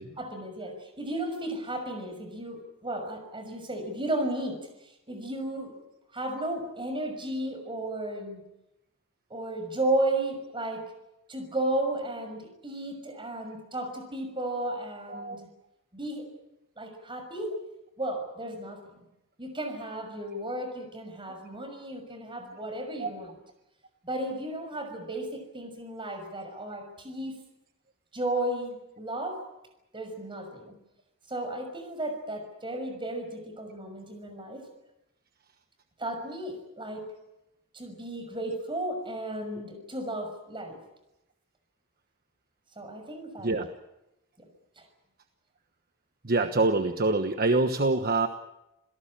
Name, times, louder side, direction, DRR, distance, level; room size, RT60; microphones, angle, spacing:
voice 1, 0.2-5.7 6.1-8.4 9.3-10.9 11.3-15.5 15.9-16.3 16.8-17.5 18.0-19.1 19.4-23.3 24.0-27.4 28.1-29.4 29.9-30.7 31.3-34.6 36.0-37.1 37.7-40.8 42.8-43.5 44.4-44.5 44.8-44.9, right 1 dB, 25° right, 6 dB, 6.1 m, -34 dB
voice 2, 15.1-15.4 23.0-23.1 43.4-43.7 46.2-48.3, right 3 dB, 45° right, 7 dB, 1.2 m, -25 dB
27.5 x 17.5 x 8.9 m, 0.90 s
head